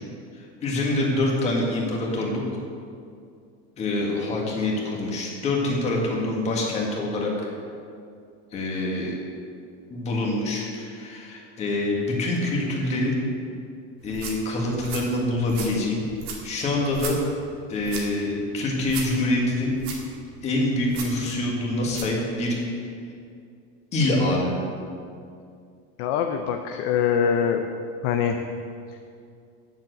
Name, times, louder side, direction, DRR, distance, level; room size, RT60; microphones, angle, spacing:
voice 1, 0.6-2.4 3.8-7.3 8.5-9.1 9.9-13.1 14.0-16.0 16.4-17.2 17.7-19.7 20.4-22.6 23.9-24.5, left 2 dB, 20° left, -2 dB, 1.8 m, -25 dB
sound 1, 14.0-22.2, right 5 dB, 75° right, 2.4 m, -38 dB
voice 2, 26.0-27.6 28.0-28.4, left 7 dB, 45° left, 5 dB, 0.6 m, -23 dB
8.9 x 7.6 x 7.8 m, 2.4 s
cardioid pair, 180°, 31 cm